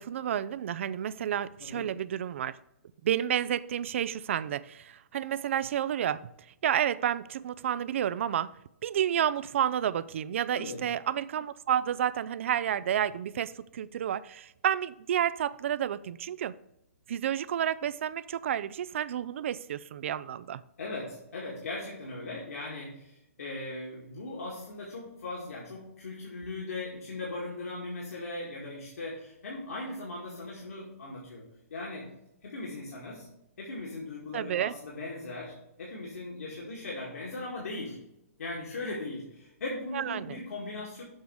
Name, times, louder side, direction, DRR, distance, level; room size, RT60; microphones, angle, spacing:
voice 1, 0.0-2.5 3.0-6.2 6.6-8.5 8.8-16.5 17.1-20.6 34.3-34.7 39.9-40.4, right 10 dB, 55° right, 18 dB, 0.3 m, -30 dB
voice 2, 10.5-10.8 20.8-31.5 31.7-32.1 32.4-33.3 33.6-38.0 38.4-41.0, left 2 dB, 80° left, -4 dB, 1.9 m, -39 dB
7.3 x 3.4 x 6.2 m, 0.83 s
hypercardioid pair, 150°, 8 cm